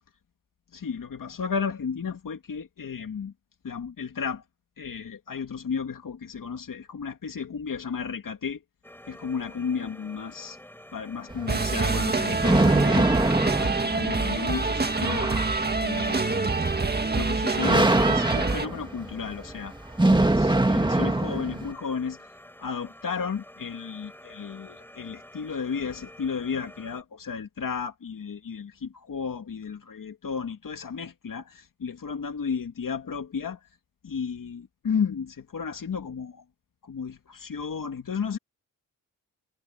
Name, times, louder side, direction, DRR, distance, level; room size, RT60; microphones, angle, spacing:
voice 1, 0.7-3.3 3.6-4.4 4.8-8.6 9.1-10.6 10.9-13.1 13.6-15.3 15.8-16.6 17.1-19.7 20.0-22.3 22.6-33.6 34.0-36.4 36.8-38.4, left 6 dB, 65° left, 2.6 m, -33 dB
sound 1, 8.8-27.0, left 1 dB, 5° left, 6.3 m, -49 dB
sound 2, 11.3-21.7, right 2 dB, 15° right, 1.9 m, -25 dB
sound 3, 11.5-18.7, right 3 dB, 30° right, 1.8 m, -26 dB
wide cardioid pair, 145°, 34 cm